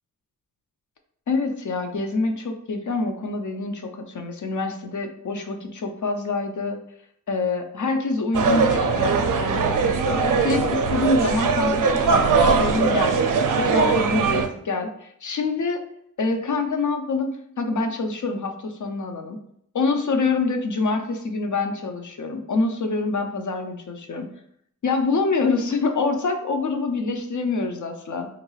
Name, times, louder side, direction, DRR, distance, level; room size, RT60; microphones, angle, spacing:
voice 1, 1.3-6.8 7.3-13.2 13.5-15.8 16.2-19.4 19.7-24.3 24.8-28.3, left 3 dB, 65° left, 5 dB, 0.6 m, -26 dB
sound 1, 8.3-14.5, right 5 dB, 75° right, 0.5 m, -21 dB
3.7 x 2.3 x 3.1 m, 0.70 s
wide cardioid pair, 75°, 33 cm